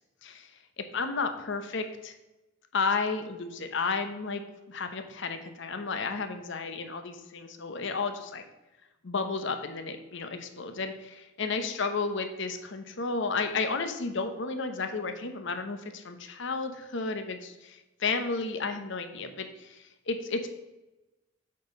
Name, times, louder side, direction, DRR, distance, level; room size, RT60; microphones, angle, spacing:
voice 1, 0.9-2.1 2.7-4.4 4.7-8.4 9.0-20.5, left 4 dB, 65° left, 7 dB, 0.9 m, -32 dB
8.4 x 4.6 x 5.2 m, 1.0 s
head